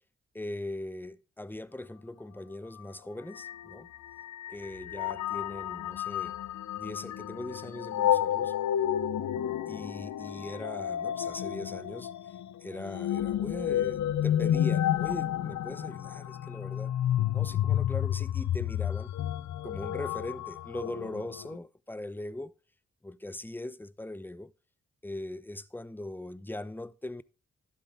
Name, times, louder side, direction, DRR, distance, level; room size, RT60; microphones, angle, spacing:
voice 1, 0.3-3.9 4.5-6.4 6.8-8.5 9.7-12.1 12.6-16.9 17.3-19.1 19.6-22.5 23.0-24.5 25.0-27.2, left 1 dB, 5° left, 0.6 m, -40 dB
sound 1, 2.8-2.9 3.3-21.6, left 11 dB, 70° left, 0.6 m, -31 dB
11.5 x 7.4 x 3.4 m
supercardioid pair, 45°, 30 cm